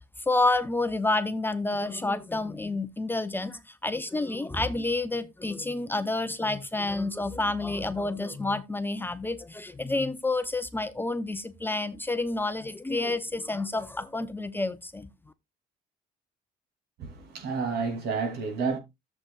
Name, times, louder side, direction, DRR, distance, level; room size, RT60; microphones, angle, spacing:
voice 1, 0.3-15.1, left 2 dB, 10° left, 0.6 m, -29 dB
voice 2, 17.0-18.8, right 5 dB, 75° right, 2.9 m, -30 dB
13.0 x 7.6 x 2.4 m
cardioid pair, 110°, 17 cm